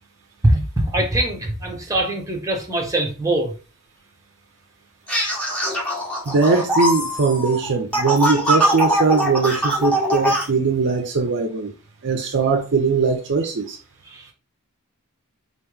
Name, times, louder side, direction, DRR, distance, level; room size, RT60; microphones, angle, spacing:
voice 1, 0.4-3.5 14.1-14.3, right 1 dB, 15° right, 1.1 m, -22 dB
sound 1, 5.1-10.5, equal, 5° left, 1.1 m, -22 dB
voice 2, 6.3-11.7 12.0-13.8, right 4 dB, 55° right, 0.6 m, -20 dB
4.2 x 3.0 x 3.4 m
head